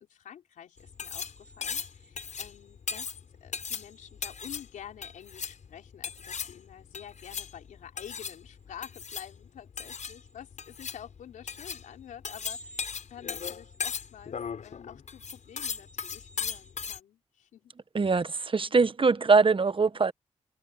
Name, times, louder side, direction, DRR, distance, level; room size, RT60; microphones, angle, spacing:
voice 1, 0.0-3.1 3.4-17.7, left 9 dB, 85° left, 4.2 m, -48 dB
sound 1, 0.8-17.0, left 6 dB, 70° left, 6.4 m, -38 dB
voice 2, 17.9-20.1, right 4 dB, 40° right, 1.2 m, -23 dB
supercardioid pair, 45°, 13 cm